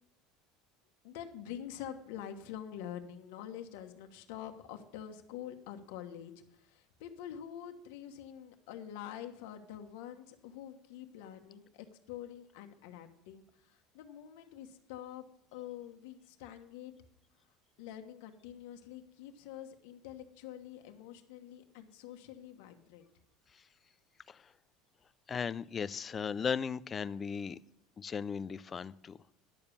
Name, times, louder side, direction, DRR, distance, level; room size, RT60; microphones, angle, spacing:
voice 1, 1.0-15.2 15.5-16.9 17.8-23.1, left 10 dB, 80° left, 5 dB, 1.2 m, -46 dB
voice 2, 25.3-27.6 28.0-29.2, left 6 dB, 20° left, 16 dB, 0.3 m, -36 dB
10.5 x 7.1 x 6.8 m, 0.77 s
cardioid pair, 155°, 0 cm